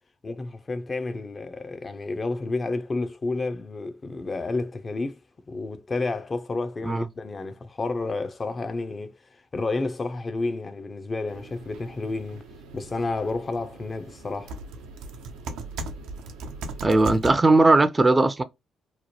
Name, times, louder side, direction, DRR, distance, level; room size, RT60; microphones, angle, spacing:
voice 1, 0.2-5.2 5.5-9.1 9.5-12.4 12.7-14.6, left 3 dB, 35° left, 0.5 m, -30 dB
sound 1, 11.3-17.3, right 2 dB, 75° right, 0.5 m, -39 dB
voice 2, 16.8-18.4, right 2 dB, 25° right, 0.5 m, -18 dB
3.0 x 2.1 x 2.9 m
hypercardioid pair, 50°, 0 cm